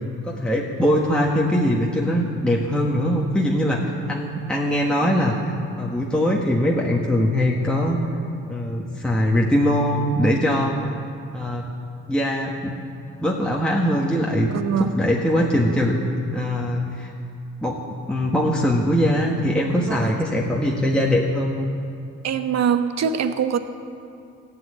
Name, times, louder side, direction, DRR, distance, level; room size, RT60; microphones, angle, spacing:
voice 1, 0.2-8.0 8.5-11.0 11.3-11.7 12.1-12.7 13.2-14.5 14.8-16.0 16.3-17.1 17.6-17.8 18.1-21.7, equal, 5° left, -3 dB, 1.5 m, -21 dB
voice 2, 14.5-14.9 19.8-20.2 22.2-23.6, right 7 dB, 60° right, 9 dB, 1.0 m, -24 dB
15.5 x 8.0 x 8.9 m, 2.4 s
cardioid pair, 90°, 30 cm